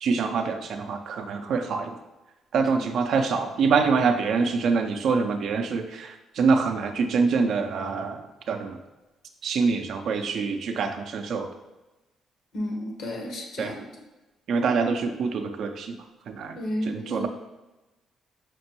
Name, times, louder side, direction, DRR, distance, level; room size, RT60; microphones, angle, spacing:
voice 1, 0.0-1.9 2.5-8.2 8.5-8.7 9.4-11.5 13.6-13.7 14.5-16.0 16.3-16.6 16.9-17.3, right 5 dB, 70° right, 6 dB, 0.4 m, -25 dB
voice 2, 12.5-13.8 16.6-17.3, left 1 dB, 75° left, 1 dB, 0.8 m, -32 dB
5.8 x 2.2 x 2.9 m, 1.1 s
cardioid pair, 90°, 0 cm